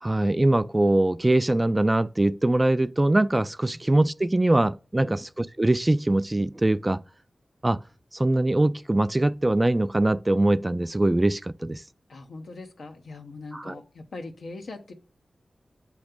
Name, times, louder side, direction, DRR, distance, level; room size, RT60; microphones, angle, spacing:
voice 1, 0.0-7.0 7.6-7.8 8.1-11.8 13.5-13.7, right 1 dB, 25° right, 0.3 m, -22 dB
voice 2, 12.1-14.9, left 3 dB, 80° left, 0.8 m, -41 dB
7.9 x 3.1 x 5.0 m
cardioid pair, 45°, 0 cm